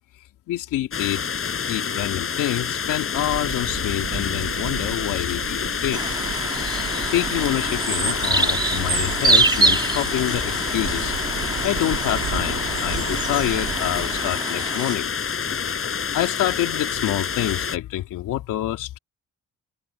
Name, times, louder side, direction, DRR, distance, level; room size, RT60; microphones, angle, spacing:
voice 1, 0.5-1.2 1.7-6.0 7.1-11.1 11.6-15.1 16.1-19.0, left 13 dB, 85° left, 3.0 m, -27 dB
sound 1, 0.9-17.8, left 6 dB, 45° left, 6.4 m, -28 dB
sound 2, 3.1-14.3, right 10 dB, 65° right, 7.7 m, -35 dB
sound 3, 5.9-15.0, right 2 dB, 15° right, 2.4 m, -25 dB
open air
cardioid pair, 90°, 30 cm